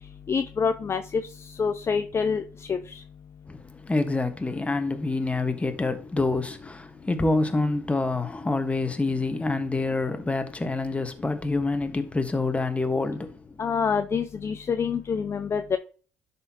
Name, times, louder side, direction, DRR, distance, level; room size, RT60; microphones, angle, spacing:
voice 1, 0.3-1.2 1.6-2.4 2.7-2.8 13.6-15.8, left 6 dB, 40° left, 0.5 m, -26 dB
voice 2, 3.5-13.6, left 3 dB, 20° left, 1.4 m, -27 dB
11.0 x 4.3 x 2.9 m
hypercardioid pair, 55°, 7 cm